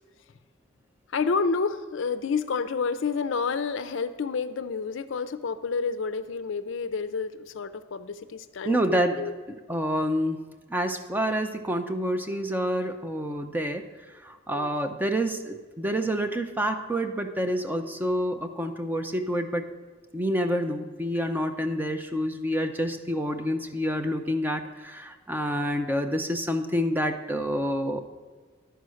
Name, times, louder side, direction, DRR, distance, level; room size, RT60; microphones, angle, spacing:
voice 1, 1.1-9.3 14.5-14.7, left 5 dB, 65° left, 12 dB, 0.4 m, -29 dB
voice 2, 8.6-10.4 10.7-13.8 14.2-19.7 20.1-28.0, equal, 10° right, 6 dB, 0.5 m, -28 dB
11.0 x 4.6 x 6.3 m, 1.4 s
head